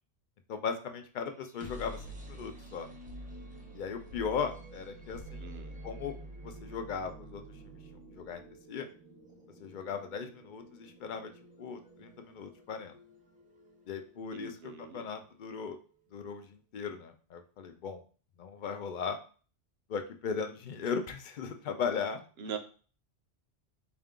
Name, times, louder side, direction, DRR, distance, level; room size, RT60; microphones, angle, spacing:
voice 1, 0.5-2.9 3.7-5.4 5.8-6.1 6.4-7.4 8.1-8.4 8.7-8.9 9.6-11.3 11.6-13.0 13.9-15.8 16.1-18.0 18.4-19.2 19.9-22.2, left 6 dB, 55° left, 6 dB, 0.6 m, -37 dB
sound 1, 1.3-15.2, right 1 dB, 10° right, 0.5 m, -49 dB
voice 2, 5.4-5.8 14.3-15.1 22.4-22.6, right 7 dB, 70° right, 7 dB, 0.8 m, -42 dB
4.3 x 2.3 x 3.6 m, 0.39 s
omnidirectional pair, 1.1 m